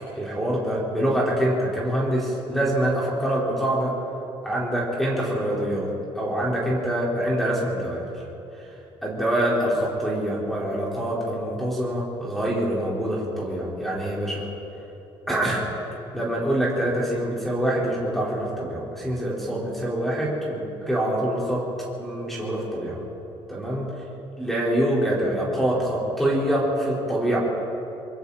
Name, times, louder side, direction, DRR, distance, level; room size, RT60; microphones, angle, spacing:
voice 1, 0.2-3.9 4.4-5.9 6.1-8.1 9.0-14.5 15.3-15.6 16.1-21.6 22.0-23.0 23.5-23.9 24.4-27.4, right 1 dB, ahead, -5 dB, 4.9 m, -25 dB
25.0 x 23.5 x 4.4 m, 3.0 s
cardioid pair, 120°, 10 cm